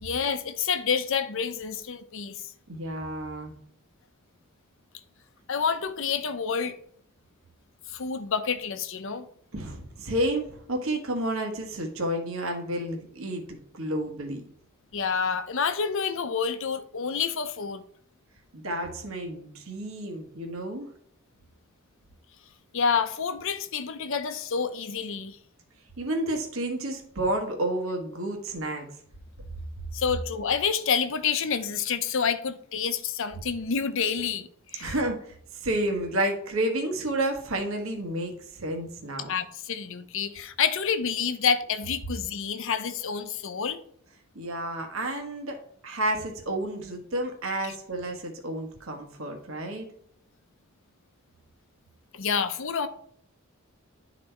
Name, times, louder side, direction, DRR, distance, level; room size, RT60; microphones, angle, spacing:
voice 1, 0.0-2.4 5.5-6.8 7.9-9.3 14.9-17.8 22.7-25.4 29.9-34.9 39.3-43.8 47.6-47.7 52.1-52.9, left 6 dB, 65° left, 0.7 m, -28 dB
voice 2, 2.7-3.5 9.5-14.4 18.5-20.9 26.0-28.9 34.8-39.3 44.3-45.6 45.8-49.9, right 1 dB, 70° right, 1.3 m, -30 dB
10.5 x 4.1 x 4.4 m
head